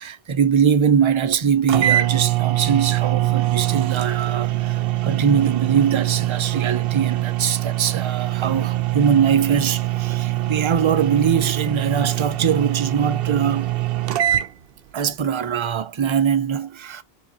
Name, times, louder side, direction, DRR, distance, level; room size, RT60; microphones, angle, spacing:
voice 1, 0.0-13.7 14.9-17.0, right 7 dB, 40° right, 0.4 m, -22 dB
sound 1, 1.3-1.4 1.7-14.5, right 15 dB, 70° right, 0.8 m, -23 dB
4.7 x 3.8 x 2.8 m
omnidirectional pair, 1.1 m